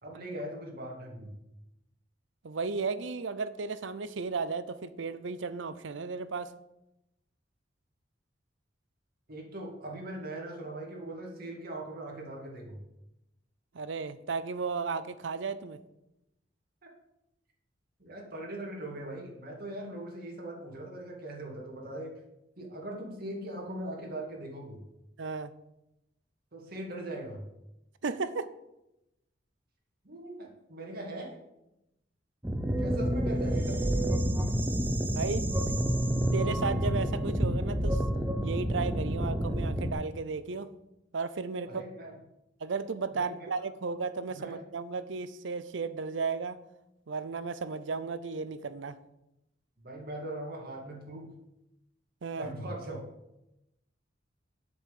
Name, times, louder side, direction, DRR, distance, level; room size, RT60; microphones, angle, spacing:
voice 1, 0.0-1.3 9.3-12.8 16.8-16.9 18.0-22.1 22.6-24.8 26.5-27.4 30.0-31.4 32.8-33.8 41.6-42.1 43.1-43.5 44.3-44.6 49.8-51.3 52.4-53.0, right 1 dB, 55° right, -1 dB, 2.3 m, -40 dB
voice 2, 2.4-6.5 13.7-15.8 25.2-25.5 28.0-28.5 35.2-35.5 36.3-38.0 38.4-40.7 41.1-41.8 42.6-46.6 47.1-49.0 52.2-52.5, right 4 dB, 75° right, 14 dB, 0.6 m, -34 dB
sound 1, 32.4-39.9, equal, 10° right, 0.8 m, -29 dB
8.0 x 5.2 x 7.5 m, 0.89 s
head